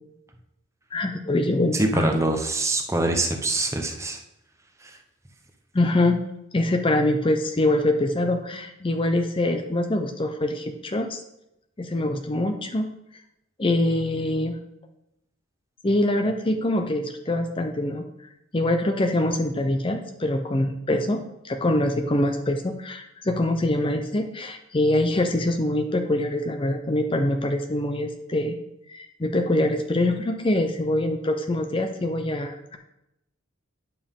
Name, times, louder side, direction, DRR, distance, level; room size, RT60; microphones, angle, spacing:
voice 1, 0.9-2.1 5.7-6.2 6.5-11.2 11.8-12.9 13.6-14.6 15.8-18.0 18.5-28.6 28.9-32.8, left 1 dB, 25° left, 5 dB, 0.5 m, -24 dB
voice 2, 1.7-4.2 4.8-5.0, right 2 dB, 15° right, 4 dB, 0.7 m, -24 dB
9.2 x 6.9 x 3.6 m, 0.85 s
head